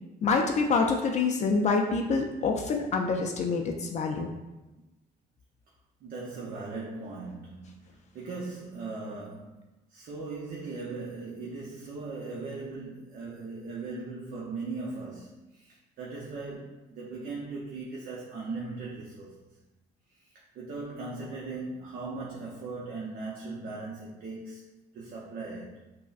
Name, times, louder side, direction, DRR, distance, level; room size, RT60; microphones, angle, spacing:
voice 1, 0.2-4.3, left 4 dB, 45° left, 3 dB, 0.4 m, -26 dB
voice 2, 6.0-9.6 9.9-19.4 20.2-24.6 24.9-25.7, right 3 dB, 60° right, -4 dB, 0.6 m, -39 dB
5.0 x 2.1 x 2.4 m, 1.0 s
cardioid pair, 110°, 17 cm